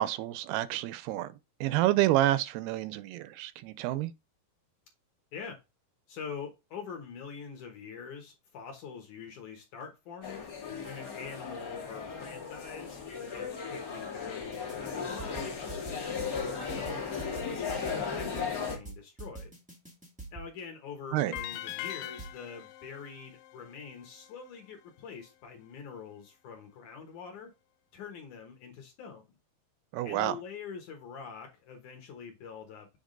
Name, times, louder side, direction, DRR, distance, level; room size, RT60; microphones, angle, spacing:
voice 1, 0.0-1.3 1.6-4.1 21.1-21.3 29.9-30.4, right 15 dB, 85° right, 2.5 m, -28 dB
voice 2, 6.1-10.5 10.8-15.5 15.8-17.0 17.4-19.5 20.3-27.5 27.9-29.2 30.0-33.0, left 6 dB, 65° left, 2.1 m, -45 dB
sound 1, 10.2-18.8, left 6 dB, 40° left, 1.3 m, -36 dB
sound 2, 14.4-14.9 15.2-20.5 21.3-22.3, right 3 dB, 5° right, 0.7 m, -44 dB
sound 3, 21.3-24.5, left 15 dB, 85° left, 2.6 m, -42 dB
7.4 x 3.5 x 3.8 m
omnidirectional pair, 4.6 m